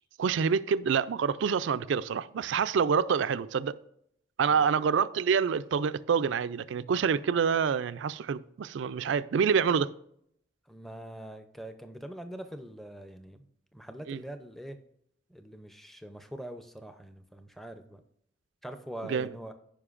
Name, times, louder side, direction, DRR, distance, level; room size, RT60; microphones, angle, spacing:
voice 1, 0.2-3.8 4.4-9.9 14.1-14.2 19.1-19.3, right 6 dB, 75° right, 0.3 m, -27 dB
voice 2, 4.5-4.8 10.7-14.8 15.3-18.0 18.6-19.5, right 1 dB, ahead, 0.5 m, -43 dB
14.5 x 5.2 x 2.5 m
head